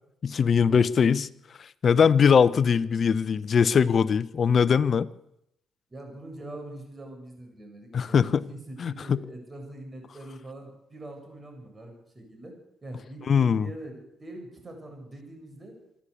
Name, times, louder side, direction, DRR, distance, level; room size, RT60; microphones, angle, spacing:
voice 1, 0.2-1.3 1.8-5.1 7.9-8.4 8.8-9.2 13.3-13.7, left 6 dB, 50° left, 16 dB, 0.8 m, -21 dB
voice 2, 5.9-12.5 12.8-15.7, right 1 dB, 25° right, 3 dB, 7.8 m, -43 dB
26.0 x 11.5 x 8.5 m, 0.80 s
cardioid pair, 90°, 0 cm